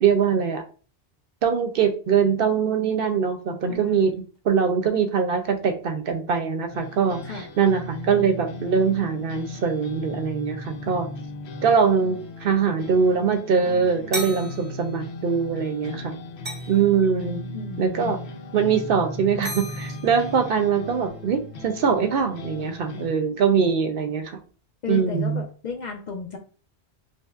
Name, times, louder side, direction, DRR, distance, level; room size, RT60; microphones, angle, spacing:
voice 1, 0.0-0.6 1.4-11.1 11.6-16.1 16.7-17.5 17.8-18.2 18.5-24.4 24.9-25.4, right 6 dB, 65° right, 6 dB, 0.7 m, -22 dB
voice 2, 3.7-4.1 7.2-7.5 17.5-18.1 24.8-26.4, left 5 dB, 55° left, 2 dB, 0.5 m, -34 dB
sound 1, 6.7-23.1, left 2 dB, 80° left, 0.9 m, -37 dB
sound 2, 14.1-15.4 15.6-15.9 16.4-16.9 18.8-19.0 19.4-20.6, right 1 dB, 15° right, 0.5 m, -36 dB
5.2 x 2.0 x 2.3 m, 0.38 s
omnidirectional pair, 1.1 m